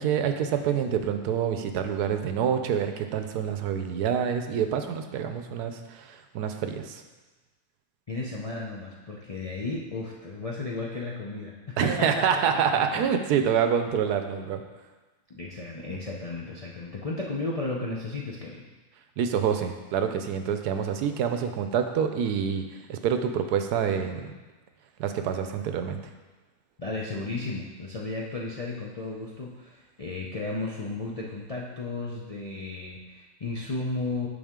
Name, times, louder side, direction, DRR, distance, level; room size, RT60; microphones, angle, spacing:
voice 1, 0.0-7.0 11.8-14.6 19.2-24.3 25.0-26.0, right 7 dB, 90° right, 7 dB, 1.2 m, -27 dB
voice 2, 8.1-13.1 15.3-18.7 26.8-34.3, left 3 dB, 45° left, -3 dB, 0.4 m, -34 dB
8.6 x 5.6 x 3.6 m, 1.2 s
omnidirectional pair, 1.6 m